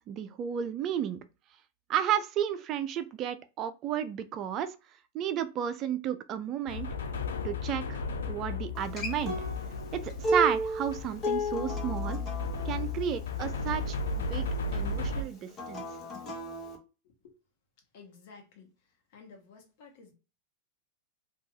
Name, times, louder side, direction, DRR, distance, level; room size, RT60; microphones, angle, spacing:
voice 1, 0.1-1.2 1.9-4.7 5.1-6.9 7.4-9.3 9.9-12.2 12.6-14.5 14.7-15.8, right 9 dB, 40° right, 0.3 m, -32 dB
sound 1, 6.7-15.2, left 3 dB, 70° left, 0.4 m, -34 dB
Acoustic guitar, 8.7-13.9 15.5-16.8, equal, 30° left, 0.8 m, -34 dB
voice 2, 17.0-17.3 17.9-18.7 19.1-20.1, left 4 dB, 55° left, 0.9 m, -53 dB
2.6 x 2.3 x 2.7 m
hypercardioid pair, 95°, 0 cm